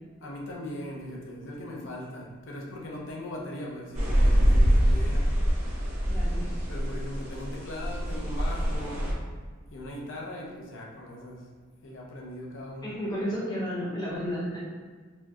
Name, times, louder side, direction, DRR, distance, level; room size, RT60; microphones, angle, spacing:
voice 1, 0.2-5.4 6.7-9.2 9.7-11.5 11.8-12.9, left 1 dB, 65° left, -2 dB, 0.7 m, -39 dB
sound 1, 3.9-9.1, equal, 35° right, 1.0 m, -25 dB
voice 2, 6.1-6.6 12.8-14.6, equal, 20° left, -6 dB, 0.9 m, -33 dB
4.2 x 2.4 x 2.8 m, 1.5 s
head